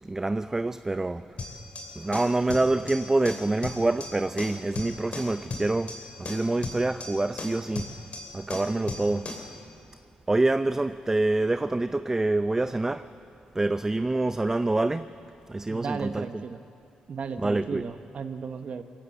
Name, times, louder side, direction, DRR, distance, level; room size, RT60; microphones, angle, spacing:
voice 1, 0.0-1.3 2.0-7.9 8.3-9.3 10.3-13.1 13.5-15.2 15.5-16.4 17.4-17.8, right 2 dB, 20° right, 0.5 m, -26 dB
sound 1, 1.4-9.5, left 3 dB, 50° left, 2.9 m, -37 dB
voice 2, 15.7-16.6 17.1-18.8, right 5 dB, 55° right, 1.0 m, -35 dB
21.5 x 18.0 x 7.7 m
cardioid pair, 65°, 3 cm